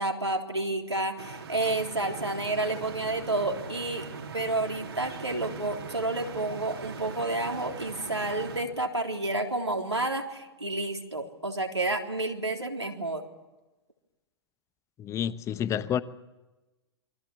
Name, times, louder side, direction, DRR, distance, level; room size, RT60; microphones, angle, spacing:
voice 1, 0.0-4.0 4.3-13.2, right 2 dB, 85° right, 3.6 m, -30 dB
sound 1, 1.2-8.6, right 4 dB, 70° right, 3.5 m, -40 dB
voice 2, 15.0-16.0, left 9 dB, 20° left, 1.1 m, -29 dB
28.0 x 24.0 x 7.2 m
figure-of-eight pair, 105°, 14 cm